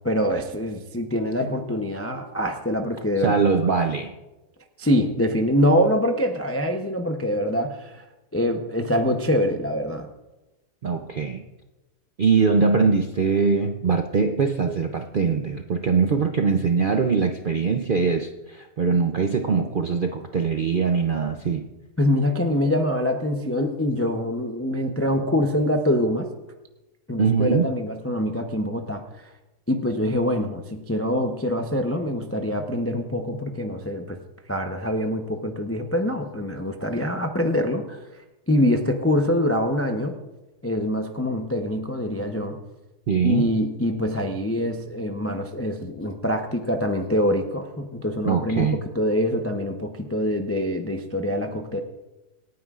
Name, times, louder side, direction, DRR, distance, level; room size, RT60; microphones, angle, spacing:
voice 1, 0.0-3.3 4.8-8.0 8.3-10.1 22.0-26.3 27.1-29.3 29.7-34.2 34.5-38.0 38.5-40.1 40.6-42.6 43.2-48.7 48.9-51.8, left 1 dB, 20° left, 4 dB, 0.4 m, -24 dB
voice 2, 3.2-4.1 10.8-11.4 12.2-21.7 27.2-27.7 43.1-43.5 48.2-48.8, right 5 dB, 70° right, 5 dB, 0.4 m, -22 dB
27.0 x 9.3 x 2.5 m, 1.1 s
omnidirectional pair, 1.7 m